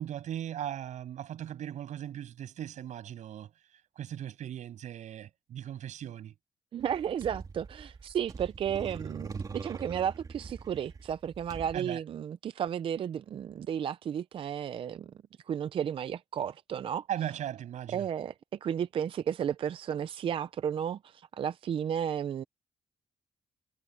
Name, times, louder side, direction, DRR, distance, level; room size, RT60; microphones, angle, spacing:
voice 1, 0.0-3.5 4.0-6.3 11.7-12.0 17.1-18.1, right 10 dB, 80° right, 7.6 m, -38 dB
voice 2, 6.7-15.1 15.5-17.1 17.9-18.3 18.6-22.4, right 9 dB, 45° right, 0.4 m, -33 dB
sound 1, 6.8-11.8, right 5 dB, 30° right, 2.3 m, -42 dB
wide cardioid pair, 165°, 12 cm